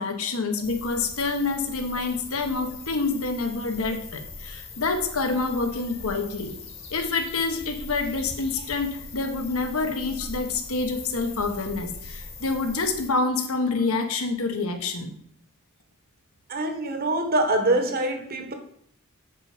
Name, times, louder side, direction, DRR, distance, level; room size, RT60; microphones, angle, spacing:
voice 1, 0.0-6.5 6.9-15.2, left 3 dB, 65° left, 6 dB, 1.3 m, -27 dB
sound 1, 0.6-13.1, left 3 dB, 25° left, 1.3 m, -41 dB
voice 2, 16.5-18.5, right 2 dB, 45° right, 6 dB, 1.3 m, -24 dB
8.2 x 5.6 x 5.0 m, 0.65 s
head